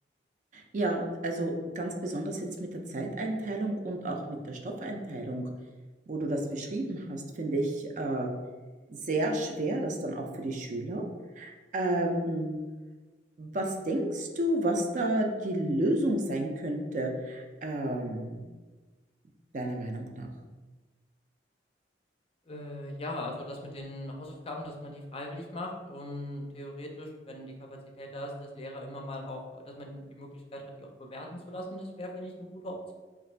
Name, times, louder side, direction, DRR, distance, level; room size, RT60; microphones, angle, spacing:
voice 1, 0.5-5.5 6.1-8.3 8.9-11.0 11.4-12.5 13.4-18.5 19.5-20.3, right 1 dB, 45° right, 2 dB, 0.4 m, -31 dB
voice 2, 22.5-32.9, left 1 dB, 35° left, 1 dB, 0.5 m, -40 dB
3.0 x 2.5 x 4.3 m, 1.3 s
head